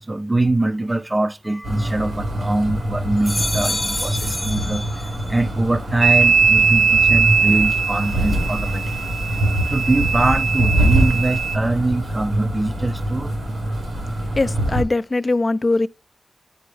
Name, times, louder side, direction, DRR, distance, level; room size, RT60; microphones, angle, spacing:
voice 1, 0.0-4.9 5.3-9.2 9.7-13.3, right 2 dB, 30° right, 0.4 m, -23 dB
sound 1, 1.4-2.6 3.0-5.5 5.8-6.4, left 1 dB, 10° left, 0.7 m, -30 dB
sound 2, 1.6-14.8, right 1 dB, 90° right, 1.2 m, -24 dB
sound 3, 6.0-11.6, right 5 dB, 65° right, 0.9 m, -19 dB
voice 2, 14.4-15.9, left 2 dB, 40° left, 0.3 m, -21 dB
8.6 x 4.3 x 3.2 m
cardioid pair, 50°, 0 cm